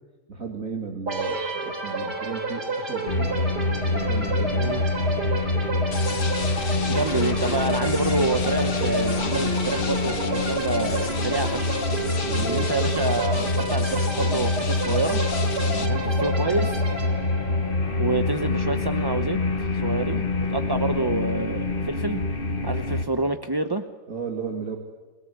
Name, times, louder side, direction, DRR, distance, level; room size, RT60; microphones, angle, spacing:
voice 1, 0.3-3.5 3.9-4.7 12.2-12.7 15.6-15.9 24.1-24.8, right 5 dB, 55° right, 1 dB, 3.1 m, -34 dB
sound 1, 1.1-18.7, right 2 dB, 90° right, 4.2 m, -31 dB
sound 2, 3.1-23.0, left 3 dB, 35° left, 1.7 m, -26 dB
sound 3, 5.9-15.9, left 6 dB, 60° left, 1.8 m, -36 dB
voice 2, 6.9-11.8 12.4-15.2 15.8-16.8 18.0-22.2 22.6-23.8, right 2 dB, 20° right, 8 dB, 0.7 m, -27 dB
28.0 x 18.0 x 9.5 m, 1.4 s
omnidirectional pair, 1.7 m